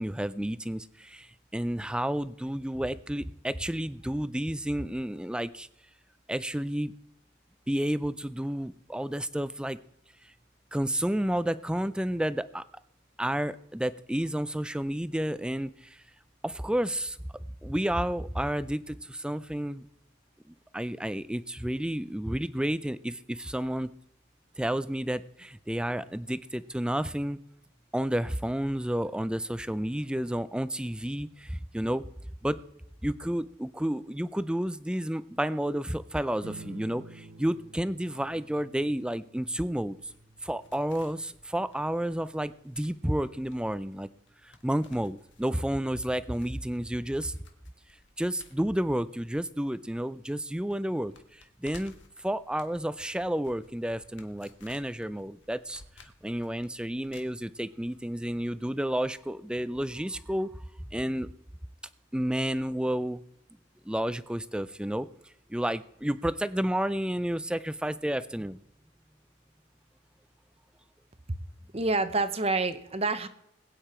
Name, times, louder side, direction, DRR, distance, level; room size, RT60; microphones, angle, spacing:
voice 1, 0.0-5.7 6.3-6.9 7.7-9.8 10.7-12.6 13.2-16.0 16.4-17.2 17.6-19.8 20.7-23.9 24.6-27.4 27.9-32.0 32.4-32.6 33.0-40.0 40.4-44.1 44.6-47.4 48.2-51.9 52.2-60.5 60.9-61.3 62.1-63.2 63.9-65.1 65.5-68.6, right 1 dB, 5° right, 14 dB, 0.4 m, -31 dB
sound 1, 36.4-47.2, right 3 dB, 70° right, 1.3 m, -53 dB
sound 2, 39.9-50.0 50.3-50.4 50.7-58.0 58.2-58.3, left 3 dB, 65° left, 1.6 m, -57 dB
voice 2, 71.7-73.3, right 3 dB, 30° right, 11 dB, 0.9 m, -27 dB
21.0 x 8.9 x 4.4 m, 0.77 s
head